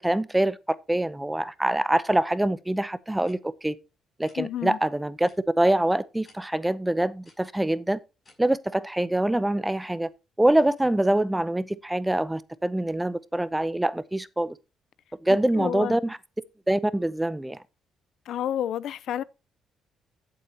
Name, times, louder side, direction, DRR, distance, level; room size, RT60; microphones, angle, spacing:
voice 1, 0.0-3.7 4.2-5.3 5.6-8.0 8.4-10.1 10.4-14.5 15.2-16.2 16.7-17.6, right 1 dB, 10° right, 0.7 m, -25 dB
sound 1, 3.2-3.4 4.2-4.4 5.2-5.4 6.2-6.4 7.2-7.4 8.2-8.3, left 3 dB, 35° left, 5.3 m, -56 dB
voice 2, 4.4-4.8 15.5-16.0 18.3-19.2, left 10 dB, 75° left, 0.6 m, -30 dB
13.0 x 7.8 x 2.9 m
cardioid pair, 90°, 0 cm